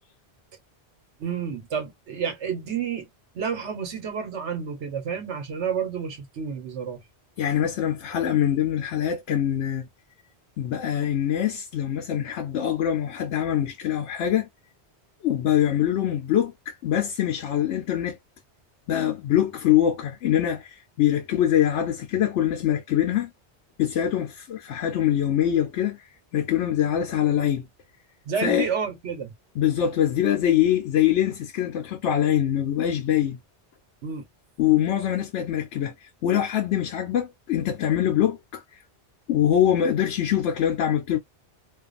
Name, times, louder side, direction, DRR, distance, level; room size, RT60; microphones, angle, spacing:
voice 1, 1.2-3.1 3.3-7.0 28.3-29.3 34.0-34.2, right 7 dB, 85° right, 1.2 m, -30 dB
voice 2, 7.4-9.9 10.6-14.5 15.2-18.2 18.9-23.3 23.8-27.7 28.4-28.7 29.6-33.4 34.6-38.6 39.3-41.2, left 10 dB, 85° left, 0.9 m, -24 dB
2.5 x 2.3 x 2.4 m
omnidirectional pair, 1.1 m